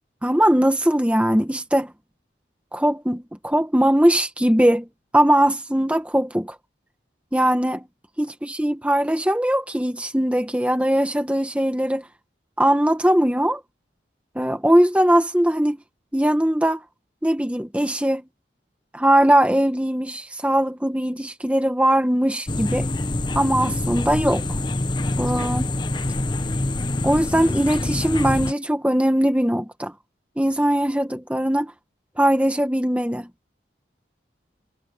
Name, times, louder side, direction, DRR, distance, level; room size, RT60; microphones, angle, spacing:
voice 1, 0.2-1.9 2.7-4.9 5.1-6.6 7.3-7.9 8.2-12.0 12.6-13.6 14.3-15.8 16.1-16.8 17.2-18.2 18.9-22.9 23.3-24.6 25.2-25.7 27.0-29.9 30.4-31.7 32.2-33.3, right 1 dB, 5° right, 1.5 m, -20 dB
sound 1, 22.5-28.5, left 2 dB, 25° left, 0.9 m, -25 dB
head